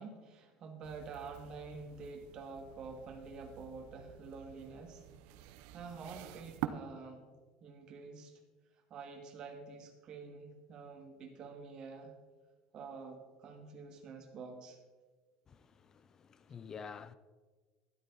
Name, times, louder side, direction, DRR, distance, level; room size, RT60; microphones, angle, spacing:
voice 1, 0.0-5.0 5.7-7.3 7.6-8.4 8.9-12.1 12.7-14.8, right 4 dB, 35° right, 2.3 m, -48 dB
sound 1, 0.8-6.7, right 17 dB, 70° right, 0.8 m, -47 dB
voice 2, 15.5-17.1, left 6 dB, 25° left, 0.6 m, -49 dB
13.0 x 11.5 x 4.2 m
cardioid pair, 155°, 2 cm